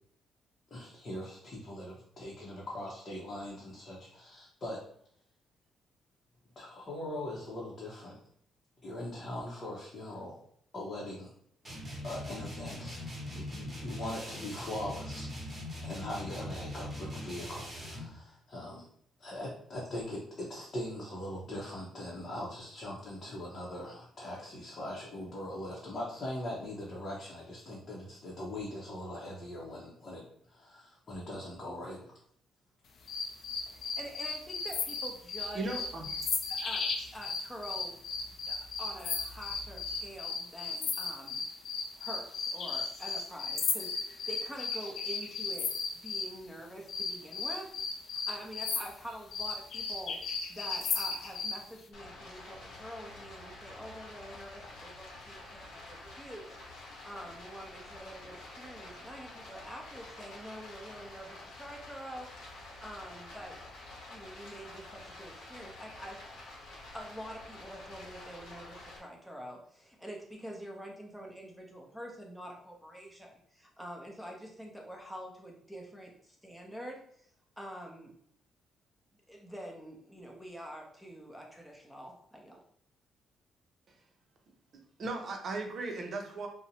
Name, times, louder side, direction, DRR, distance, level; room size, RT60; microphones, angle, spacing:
voice 1, 0.7-4.8 6.6-8.2 8.8-10.4 10.7-11.3 12.0-13.0 13.3-15.3 15.8-18.9 19.2-32.1, left 1 dB, 40° left, -5 dB, 0.7 m, -41 dB
sound 1, 11.6-18.1, left 1 dB, 25° right, 1.1 m, -41 dB
sound 2, 33.1-46.3 46.9-51.6, left 4 dB, 65° left, 0.4 m, -35 dB
voice 2, 33.7-35.9 36.5-37.9 38.5-41.4 42.0-45.7 46.0-47.8 48.0-50.2 50.5-62.3 62.8-63.6 64.1-66.2 66.9-77.3 77.6-78.1 79.3-82.6, equal, ahead, -1 dB, 0.7 m, -46 dB
voice 3, 35.5-36.1 85.0-86.5, right 2 dB, 55° right, 3 dB, 0.6 m, -36 dB
Stream, 51.9-69.0, left 2 dB, 80° left, 0.8 m, -49 dB
2.5 x 2.1 x 2.8 m, 0.65 s
cardioid pair, 90°, 0 cm